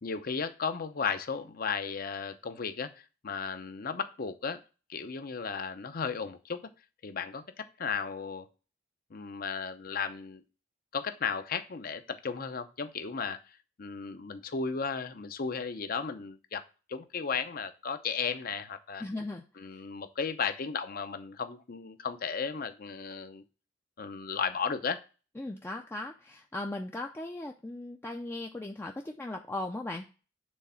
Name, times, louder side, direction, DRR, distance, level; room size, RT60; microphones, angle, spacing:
voice 1, 0.0-4.6 4.9-6.7 7.0-8.5 9.1-10.4 10.9-16.6 16.9-19.0 19.6-23.4 24.0-25.0, left 5 dB, 50° left, 10 dB, 0.6 m, -35 dB
voice 2, 19.0-19.4 19.7-19.8 25.4-30.1, left 2 dB, 15° left, 2 dB, 0.4 m, -38 dB
6.3 x 3.7 x 5.6 m, 0.34 s
head